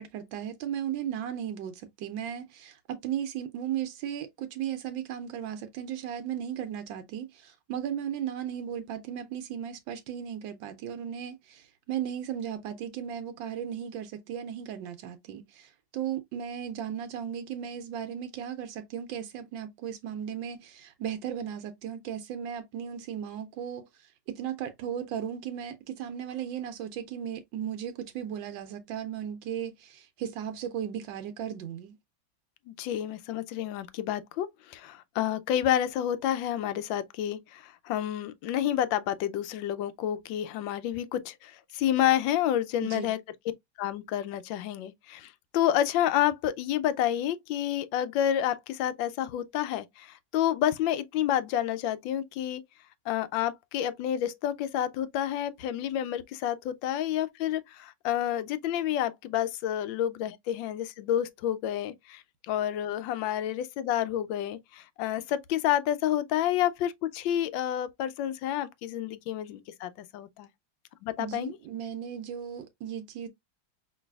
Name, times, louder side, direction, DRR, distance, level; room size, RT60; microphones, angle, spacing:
voice 1, 0.0-32.0 42.8-43.1 71.2-73.3, right 9 dB, 85° right, 1.4 m, -36 dB
voice 2, 32.7-43.2 43.8-52.6 53.1-70.5 71.0-71.6, left 11 dB, 85° left, 1.3 m, -29 dB
5.2 x 3.2 x 2.2 m
omnidirectional pair, 2.0 m